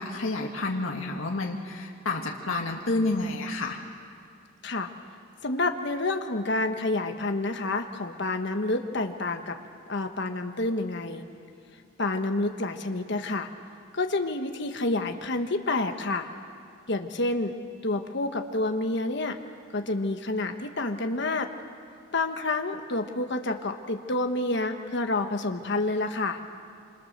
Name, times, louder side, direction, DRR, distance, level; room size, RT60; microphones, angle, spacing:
voice 1, 0.0-3.8, left 2 dB, 85° left, 0 dB, 1.7 m, -29 dB
voice 2, 5.4-9.6 9.9-11.2 12.0-13.5 13.9-16.3 16.9-17.5 17.8-19.4 19.7-21.5 22.1-26.4, left 2 dB, 60° left, 5 dB, 1.4 m, -28 dB
28.0 x 26.5 x 6.7 m, 2.3 s
head